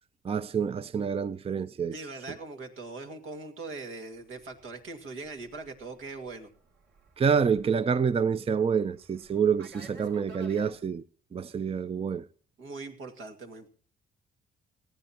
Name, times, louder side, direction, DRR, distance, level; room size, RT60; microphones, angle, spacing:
voice 1, 0.2-1.9 7.2-11.0 11.3-12.3, right 6 dB, 30° right, 0.5 m, -27 dB
voice 2, 1.9-6.5 12.6-13.7, right 3 dB, 80° right, 2.1 m, -41 dB
Fixed-wing aircraft airplane, 4.3-10.8, right 3 dB, 65° right, 3.2 m, -52 dB
19.5 x 14.5 x 2.9 m
cardioid pair, 90°, 20 cm